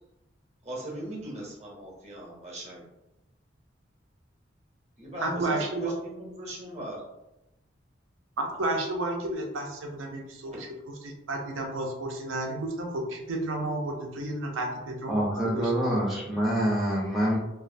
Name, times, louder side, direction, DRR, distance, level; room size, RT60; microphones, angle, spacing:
voice 1, 0.6-2.8 5.0-7.0 10.5-10.6, right 1 dB, 35° right, -4 dB, 0.7 m, -39 dB
voice 2, 5.2-5.9 8.4-10.5 11.0-15.7, right 2 dB, 90° right, 1 dB, 0.5 m, -31 dB
voice 3, 15.1-17.4, right 1 dB, ahead, -6 dB, 0.4 m, -26 dB
2.3 x 2.1 x 2.5 m, 0.93 s
head